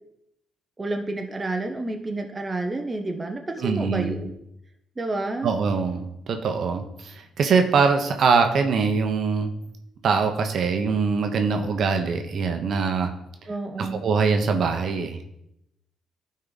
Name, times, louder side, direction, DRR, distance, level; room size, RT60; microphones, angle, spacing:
voice 1, 0.8-4.3 5.0-5.5 13.5-14.1, right 2 dB, 25° right, 4 dB, 0.9 m, -30 dB
voice 2, 3.6-4.2 5.4-9.5 10.0-13.1 13.8-15.4, right 5 dB, 60° right, 5 dB, 1.0 m, -23 dB
12.0 x 4.3 x 4.0 m, 0.82 s
cardioid pair, 90°, 0 cm